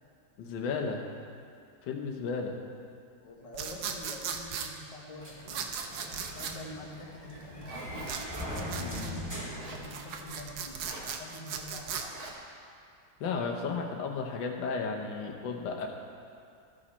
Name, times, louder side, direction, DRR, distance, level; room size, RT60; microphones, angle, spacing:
voice 1, 0.4-1.0 1.8-2.6 8.8-9.2 13.2-15.9, left 5 dB, 75° left, 2 dB, 1.6 m, -34 dB
voice 2, 3.1-8.1 9.3-12.2, left 1 dB, 30° left, -1 dB, 0.8 m, -47 dB
sound 1, 3.5-4.7 5.5-6.6 8.0-9.1 9.8-12.1, right 7 dB, 80° right, 1.3 m, -37 dB
sound 2, 5.2-10.5, equal, 10° right, 1.7 m, -41 dB
Zipper (clothing), 7.2-8.2 9.3-9.9 10.7-11.1 12.0-12.3, right 2 dB, 55° right, 1.7 m, -44 dB
14.0 x 5.1 x 4.2 m, 2.4 s
omnidirectional pair, 2.0 m